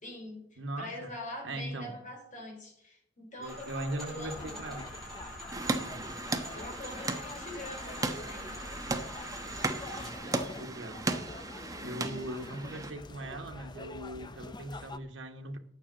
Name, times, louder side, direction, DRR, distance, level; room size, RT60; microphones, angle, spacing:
voice 1, 0.0-4.6 6.5-8.6 11.8-12.2, left 1 dB, 45° left, 4.4 m, -44 dB
voice 2, 0.6-1.1 1.4-2.0 3.4-4.9 5.8-6.1 9.9-11.1 11.8-15.6, right 1 dB, 80° right, 1.2 m, -40 dB
sound 1, 3.4-10.1, equal, ahead, 6.3 m, -45 dB
sound 2, 4.2-15.0, left 3 dB, 25° left, 0.6 m, -46 dB
sound 3, 5.5-12.9, right 2 dB, 20° right, 0.9 m, -36 dB
10.0 x 6.7 x 8.5 m
head